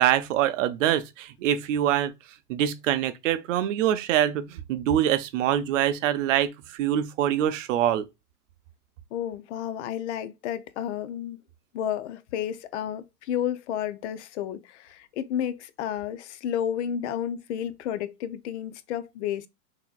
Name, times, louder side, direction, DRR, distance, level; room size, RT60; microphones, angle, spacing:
voice 1, 0.0-2.1 2.5-8.0, right 11 dB, 55° right, 0.7 m, -24 dB
voice 2, 9.1-11.4 11.7-19.5, left 10 dB, 50° left, 0.5 m, -31 dB
6.0 x 2.8 x 2.3 m
hypercardioid pair, 135°, 47 cm